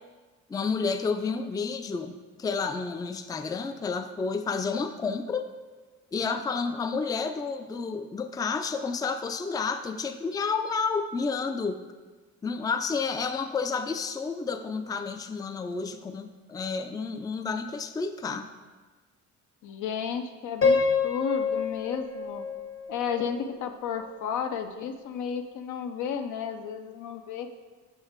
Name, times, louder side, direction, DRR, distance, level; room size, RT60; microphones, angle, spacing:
voice 1, 0.5-5.5 6.1-11.8 12.4-18.5, left 5 dB, 15° left, 7 dB, 0.3 m, -30 dB
voice 2, 19.6-20.8 21.0-22.4 22.9-27.5, left 7 dB, 80° left, 6 dB, 0.6 m, -32 dB
Piano, 20.6-23.6, left 4 dB, 45° left, 0.8 m, -27 dB
6.3 x 5.5 x 3.5 m, 1.3 s
cardioid pair, 90°, 30 cm